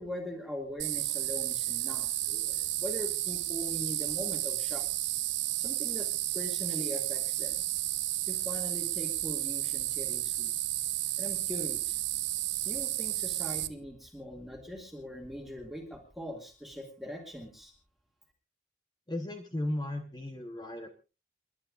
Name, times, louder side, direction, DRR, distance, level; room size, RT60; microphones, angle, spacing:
voice 1, 0.0-4.8 5.6-6.1 6.3-7.6 8.2-10.5 11.2-12.0 12.6-17.7, left 1 dB, ahead, 0 dB, 2.2 m, -41 dB
sound 1, 0.8-13.7, right 16 dB, 85° right, 0.8 m, -32 dB
voice 2, 19.1-20.9, left 1 dB, 25° left, 5 dB, 1.1 m, -35 dB
29.0 x 11.5 x 2.5 m, 0.31 s
head